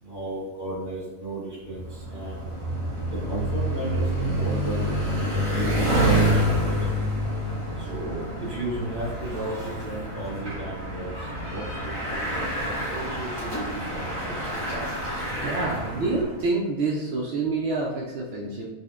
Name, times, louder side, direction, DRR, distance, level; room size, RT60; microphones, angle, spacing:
voice 1, 0.0-2.5 3.1-6.8 7.8-12.2 12.9-14.7, right 1 dB, 20° right, -7 dB, 1.0 m, -35 dB
Bicycle, 1.7-16.4, right 1 dB, 60° right, 2.1 m, -27 dB
voice 2, 15.4-18.7, right 3 dB, 80° right, -3 dB, 0.5 m, -27 dB
5.4 x 2.1 x 2.3 m, 1.1 s
omnidirectional pair, 1.6 m